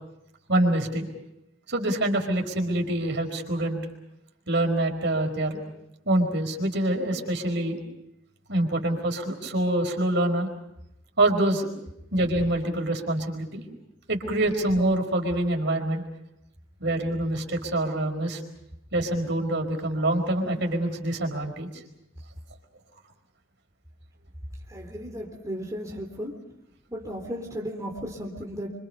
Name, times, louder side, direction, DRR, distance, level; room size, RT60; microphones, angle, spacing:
voice 1, 0.5-1.1 1.7-3.8 4.5-5.6 6.1-7.8 8.5-10.5 11.2-11.7 12.1-13.6 14.1-16.0 16.8-18.4 18.9-21.7, right 1 dB, 60° right, 3 dB, 4.7 m, -25 dB
voice 2, 24.7-26.4 26.9-28.7, equal, 15° right, -1 dB, 3.6 m, -35 dB
28.0 x 25.5 x 5.5 m, 0.81 s
head